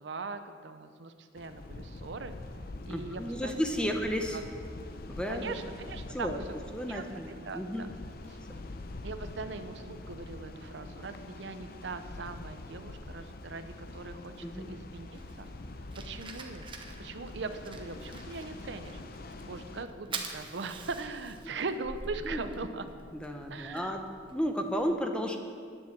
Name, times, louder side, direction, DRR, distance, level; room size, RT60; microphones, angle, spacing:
voice 1, 0.0-2.3 2.9-3.9 4.3-4.4 5.3-6.4 6.9-7.9 8.3-8.4 9.0-15.5 16.0-16.7 17.0-19.0 19.4-22.8 23.5-24.0, right 4 dB, 65° right, 9 dB, 0.6 m, -40 dB
sound 1, 1.4-19.9, left 2 dB, 50° left, 0.6 m, -45 dB
voice 2, 2.9-4.4 5.1-5.6 6.1-6.4 6.7-7.8 14.4-14.7 22.2-22.4 23.1-24.0 24.3-25.4, equal, 5° left, 4 dB, 0.7 m, -33 dB
Fire, 15.1-24.8, right 3 dB, 25° right, 0.9 m, -46 dB
10.0 x 7.4 x 7.3 m, 2.2 s
head